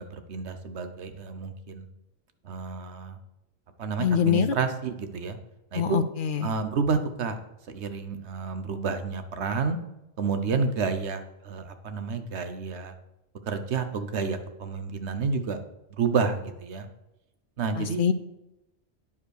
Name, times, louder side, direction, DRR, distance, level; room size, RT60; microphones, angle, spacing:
voice 1, 0.0-1.8 2.4-3.2 3.8-5.4 5.7-6.0 6.4-7.4 7.7-9.8 10.2-12.9 13.5-15.6 16.0-16.9 17.6-18.0, right 5 dB, 70° right, 9 dB, 1.1 m, -30 dB
voice 2, 4.0-4.6 5.7-6.5 17.7-18.1, left 7 dB, 55° left, 12 dB, 0.6 m, -24 dB
9.6 x 5.2 x 6.4 m, 0.91 s
omnidirectional pair, 1.2 m